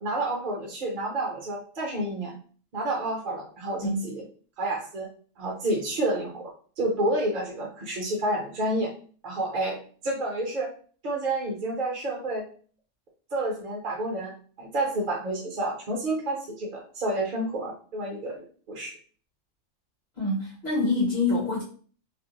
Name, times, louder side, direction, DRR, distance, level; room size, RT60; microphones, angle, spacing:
voice 1, 0.0-2.3 2.7-4.2 4.6-5.1 5.4-6.5 6.8-8.9 9.2-9.8 10.0-10.7 11.0-12.5 13.3-14.3 14.6-18.4 18.7-18.9, right 1 dB, 45° right, -2 dB, 0.7 m, -29 dB
voice 2, 3.8-4.1 20.1-21.6, left 2 dB, 55° left, -6 dB, 1.1 m, -26 dB
2.5 x 2.1 x 2.7 m, 0.43 s
omnidirectional pair, 1.4 m